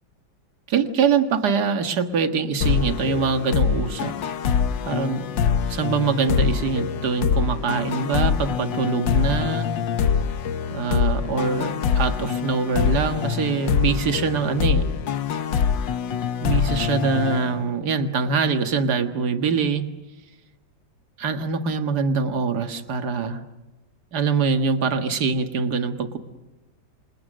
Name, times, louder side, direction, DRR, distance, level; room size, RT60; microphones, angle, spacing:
voice 1, 0.7-4.2 4.9-5.3 5.7-9.7 10.7-14.9 16.4-19.9 21.2-23.4 24.1-26.2, right 5 dB, 60° right, 7 dB, 2.1 m, -24 dB
sound 1, 2.6-18.1, left 7 dB, 80° left, 1.8 m, -24 dB
28.0 x 27.0 x 6.4 m, 1.1 s
omnidirectional pair, 2.0 m